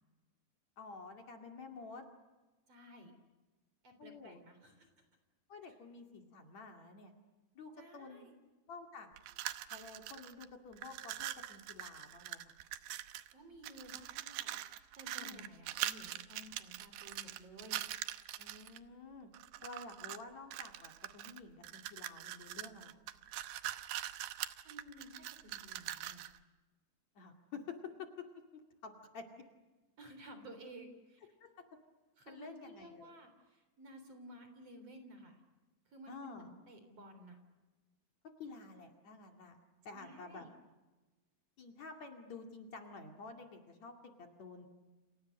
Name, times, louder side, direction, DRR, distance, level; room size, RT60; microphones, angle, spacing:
voice 1, 0.8-2.1 4.0-4.4 5.5-7.1 7.5-8.3 8.7-9.1 9.7-12.5 15.2-15.5 18.3-19.3 19.6-23.0 27.1-28.3 28.5-29.3 31.4-31.7 32.3-33.1 36.1-36.5 38.4-39.6 39.8-40.5 41.6-44.7, left 4 dB, 50° left, 4 dB, 3.3 m, -50 dB
voice 2, 2.7-3.1 3.8-4.9 7.8-8.4 13.3-17.8 24.6-26.3 30.0-31.2 32.2-35.4 35.9-37.4 39.9-40.5, equal, 40° right, 7 dB, 4.3 m, -54 dB
sound 1, 9.2-10.5 10.7-13.3 13.6-18.8 19.3-20.2 20.5-26.4, right 13 dB, 85° right, 2.9 m, -43 dB
29.5 x 28.5 x 6.6 m, 1.2 s
omnidirectional pair, 4.4 m